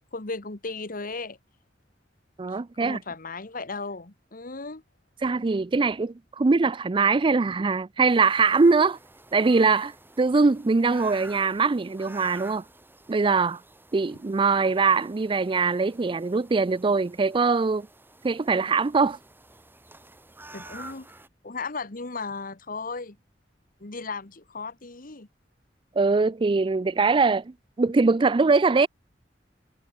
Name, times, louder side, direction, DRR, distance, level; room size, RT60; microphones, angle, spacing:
voice 1, 0.1-1.4 2.8-4.8 20.5-21.1 21.4-23.2 23.8-25.3, left 3 dB, 50° left, 1.6 m, -35 dB
voice 2, 2.4-3.0 5.2-9.0 9.3-12.6 13.1-13.6 13.9-17.9 18.2-19.2 26.0-28.9, right 4 dB, 25° right, 0.4 m, -22 dB
sound 1, 8.1-21.3, right 2 dB, 10° right, 4.4 m, -49 dB
head